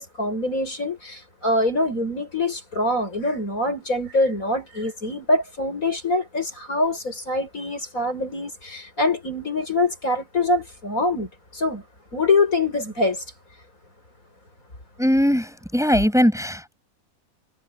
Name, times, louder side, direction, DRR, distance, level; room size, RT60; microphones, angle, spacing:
voice 1, 0.0-11.8 12.1-13.2, left 2 dB, 70° left, 7.7 m, -24 dB
voice 2, 15.0-16.7, equal, ahead, 7.7 m, -20 dB
omnidirectional pair, 1.5 m